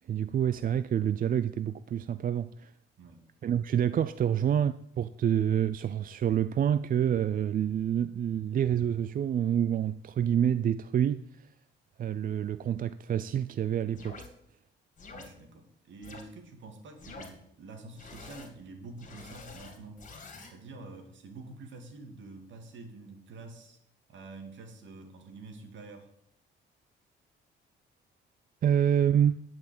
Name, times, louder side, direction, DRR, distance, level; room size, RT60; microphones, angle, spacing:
voice 1, 0.1-2.7 3.4-11.5 12.0-14.2 28.6-29.4, right 9 dB, 45° right, 0.4 m, -27 dB
sound 1, 14.0-14.3 15.0-15.3 16.0-16.2 17.0-17.3 18.0-18.5 19.0-20.5, left 4 dB, 40° left, 2.7 m, -47 dB
voice 2, 15.1-20.0 20.5-23.8 24.1-26.1, right 3 dB, 70° right, 2.6 m, -47 dB
11.0 x 5.9 x 8.8 m
cardioid pair, 90°, 20 cm